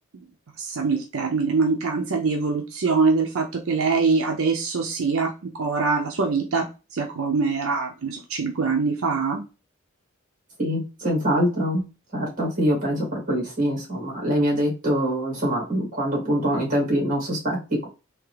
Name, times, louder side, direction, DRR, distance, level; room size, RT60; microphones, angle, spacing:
voice 1, 0.6-9.4, right 4 dB, 80° right, 3 dB, 0.6 m, -24 dB
voice 2, 10.6-11.8 12.1-17.9, equal, 40° right, -1 dB, 2.2 m, -24 dB
3.6 x 2.8 x 3.2 m, 0.30 s
head